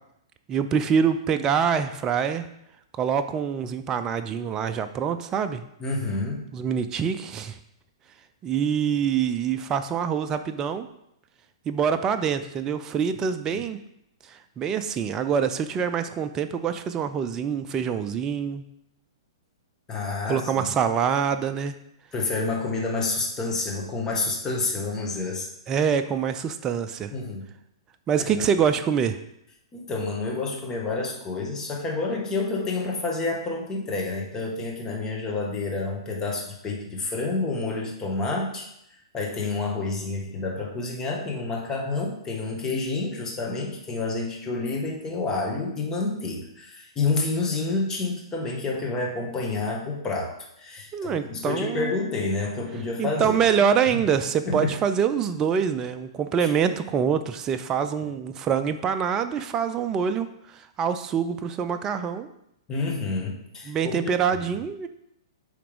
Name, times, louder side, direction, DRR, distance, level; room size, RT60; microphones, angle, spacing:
voice 1, 0.5-2.5 3.0-5.6 6.5-7.6 8.4-10.9 11.7-13.8 14.6-18.6 20.3-21.7 25.7-27.1 28.1-29.2 50.9-51.9 53.0-60.3 60.5-62.3 63.7-64.9, right 7 dB, 25° right, 9 dB, 0.4 m, -25 dB
voice 2, 5.8-6.4 13.5-13.6 19.9-20.6 22.1-25.5 27.1-27.4 28.2-28.5 29.7-38.7 39.1-53.4 53.9-54.0 54.4-54.7 56.4-56.5 58.0-58.1 62.7-64.0, left 3 dB, 20° left, -1 dB, 1.5 m, -29 dB
8.5 x 3.4 x 3.6 m, 0.78 s
hypercardioid pair, 125°, 3 cm